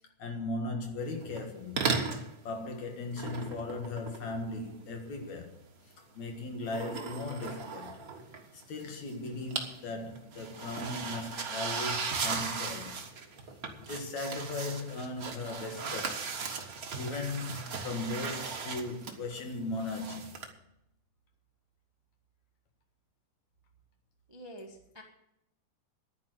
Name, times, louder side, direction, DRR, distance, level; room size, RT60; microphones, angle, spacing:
voice 1, 0.2-1.9 2.4-5.6 6.2-8.0 8.5-13.0 13.8-16.2 17.0-20.3, left 2 dB, 60° left, 2.8 m, -37 dB
sound 1, 1.2-1.5 1.8-2.3 3.1-4.8 6.6-8.8 9.1-9.8 10.0-20.5, right 5 dB, 55° right, 1.0 m, -37 dB
voice 2, 24.3-25.0, equal, 30° right, 0.4 m, -47 dB
11.0 x 9.7 x 7.8 m
omnidirectional pair, 3.8 m